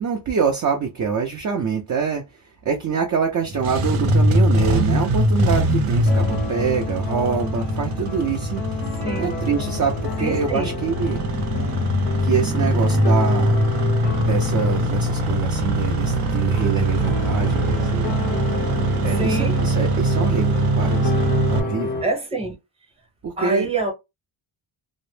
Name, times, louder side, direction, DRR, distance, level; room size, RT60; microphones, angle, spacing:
voice 1, 0.0-11.2 12.2-13.6 14.2-18.2 19.0-22.0 23.2-23.7, right 6 dB, 40° right, 0.5 m, -25 dB
Engine starting, 3.5-21.6, right 1 dB, 85° right, 0.7 m, -22 dB
sound 1, 6.1-22.0, left 4 dB, 20° left, 0.5 m, -31 dB
voice 2, 9.0-9.3 10.2-10.7 19.2-19.6 22.0-22.5 23.4-23.9, right 2 dB, 10° right, 0.8 m, -25 dB
2.0 x 2.0 x 3.1 m
cardioid pair, 120°, 50 cm